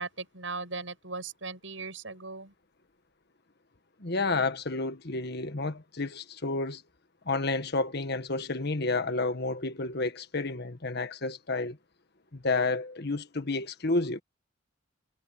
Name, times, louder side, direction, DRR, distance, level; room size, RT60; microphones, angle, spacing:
voice 1, 0.0-2.5, right 4 dB, 85° right, 7.4 m, -38 dB
voice 2, 4.0-6.8 7.2-11.8 12.3-14.2, left 3 dB, 60° left, 1.6 m, -30 dB
head